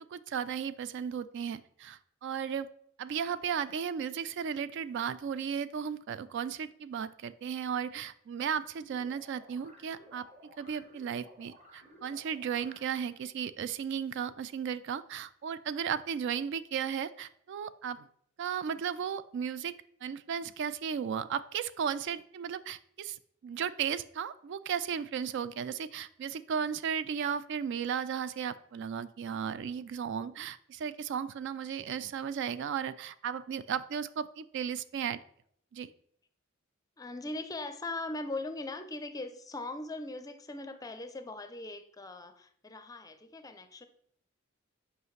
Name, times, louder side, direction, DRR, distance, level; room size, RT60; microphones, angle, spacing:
voice 1, 0.0-2.7 3.0-10.3 10.6-18.1 18.4-19.7 20.0-35.2 35.7-35.9, right 7 dB, 60° right, 16 dB, 0.3 m, -35 dB
sound 1, 8.8-13.2, equal, 35° right, 1.3 m, -56 dB
voice 2, 37.0-43.9, left 2 dB, 15° left, 9 dB, 0.5 m, -40 dB
8.1 x 4.9 x 3.2 m, 0.67 s
head